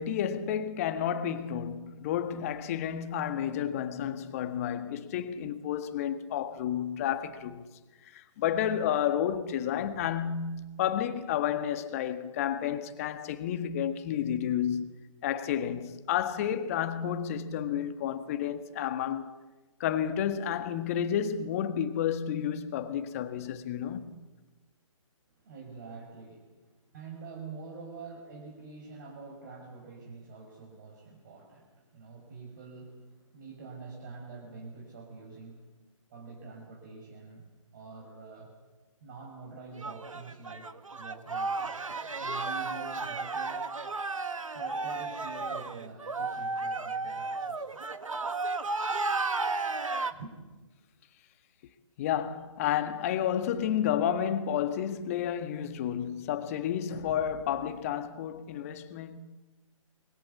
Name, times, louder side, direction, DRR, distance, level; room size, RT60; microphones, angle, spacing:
voice 1, 0.0-7.6 8.0-14.9 15.2-19.4 19.8-24.2 52.0-59.2, left 9 dB, 25° left, 1.6 m, -31 dB
voice 2, 25.4-35.7 36.1-38.5 39.0-40.7 41.0-43.7 44.5-47.8 50.1-50.3, right 4 dB, 35° right, 5.8 m, -46 dB
sound 1, 39.8-50.1, right 3 dB, 75° right, 1.9 m, -33 dB
26.0 x 23.5 x 8.3 m
figure-of-eight pair, 150°, 17 cm